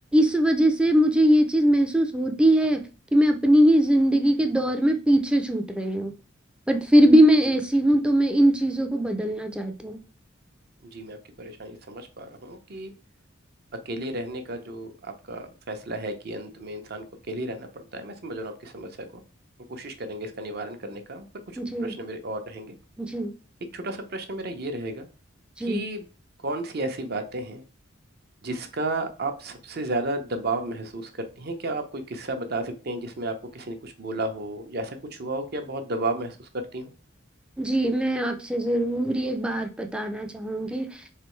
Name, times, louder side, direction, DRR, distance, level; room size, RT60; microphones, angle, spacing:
voice 1, 0.1-2.8 3.1-6.1 6.7-10.0 21.6-21.9 23.0-23.3 25.6-25.8 37.6-40.9, right 1 dB, 5° right, 6 dB, 0.4 m, -21 dB
voice 2, 10.9-12.9 13.9-19.2 19.7-21.3 21.5-22.7 23.7-25.1 25.6-26.0 26.4-27.6 28.4-36.3 36.7-36.9, right 2 dB, 50° right, 7 dB, 0.7 m, -33 dB
3.7 x 3.3 x 3.1 m, 0.35 s
head